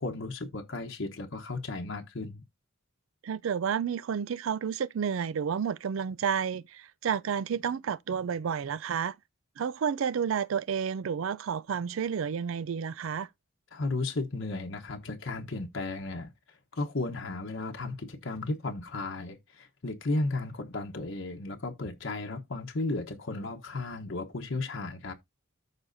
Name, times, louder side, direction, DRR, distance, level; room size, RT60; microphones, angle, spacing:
voice 1, 0.0-2.4 13.7-25.1, left 2 dB, 65° left, 1.1 m, -34 dB
voice 2, 3.2-9.2 9.6-13.3, right 7 dB, 70° right, 0.4 m, -31 dB
13.5 x 4.9 x 2.6 m
head